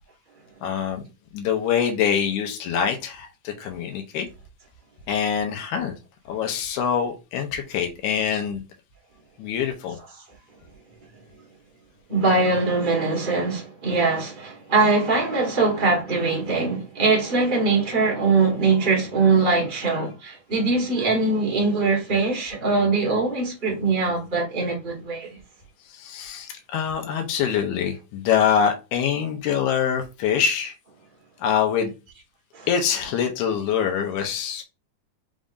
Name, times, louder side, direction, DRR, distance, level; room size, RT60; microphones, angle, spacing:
voice 1, 0.6-1.0 1.3-4.3 5.1-6.0 6.3-8.6 9.4-10.0 25.9-30.7 31.4-31.9 32.7-34.6, left 8 dB, 90° left, 2.2 m, -24 dB
voice 2, 12.1-25.4 32.5-32.7, right 3 dB, 55° right, 0.5 m, -22 dB
5.2 x 3.6 x 2.5 m
omnidirectional pair, 3.5 m